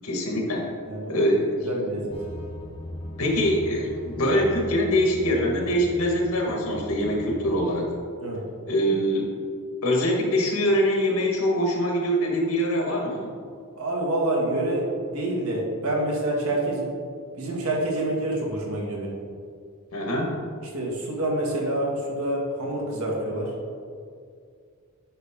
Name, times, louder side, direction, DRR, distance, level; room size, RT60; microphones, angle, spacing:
voice 1, 0.0-0.7 1.1-1.6 3.2-7.9 8.7-9.3 9.8-13.3 19.9-20.3, equal, 80° left, 0 dB, 1.6 m, -23 dB
voice 2, 0.9-1.2 1.6-2.1 8.2-8.4 13.8-16.9 17.4-19.2 20.7-23.5, right 1 dB, 75° right, -2 dB, 1.8 m, -27 dB
sound 1, 2.1-7.9, left 1 dB, 25° left, 0.9 m, -38 dB
9.3 x 5.4 x 3.7 m, 2.2 s
head